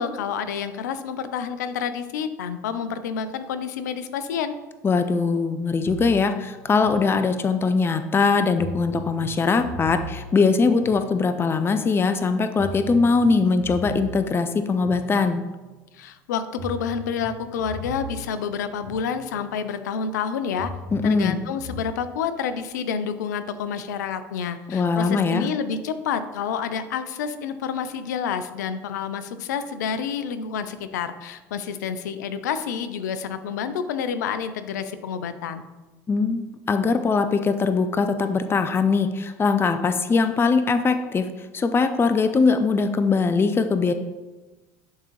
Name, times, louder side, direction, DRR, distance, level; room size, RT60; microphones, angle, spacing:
voice 1, 0.0-4.6 15.9-20.7 21.0-35.6, left 7 dB, 80° left, 11 dB, 0.5 m, -29 dB
voice 2, 4.8-15.4 20.9-21.4 24.7-25.5 36.1-43.9, left 4 dB, 25° left, 9 dB, 0.5 m, -21 dB
sound 1, 5.8-7.7 8.6-11.6 12.6-15.7 16.6-19.6 20.6-22.0, right 1 dB, 85° right, 1.6 m, -39 dB
10.5 x 3.7 x 3.1 m, 1.2 s
hypercardioid pair, 70°, 9 cm